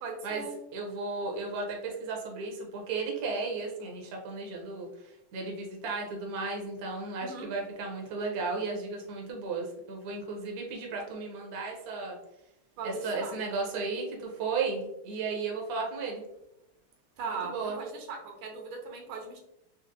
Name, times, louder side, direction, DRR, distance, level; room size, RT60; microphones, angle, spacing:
voice 1, 0.0-0.5 7.2-7.5 12.8-13.4 17.2-19.4, right 4 dB, 80° right, 1 dB, 1.5 m, -38 dB
voice 2, 0.7-12.2 12.8-16.2 17.3-17.8, right 4 dB, 60° right, 0 dB, 1.0 m, -34 dB
4.2 x 2.1 x 2.5 m, 0.83 s
omnidirectional pair, 2.3 m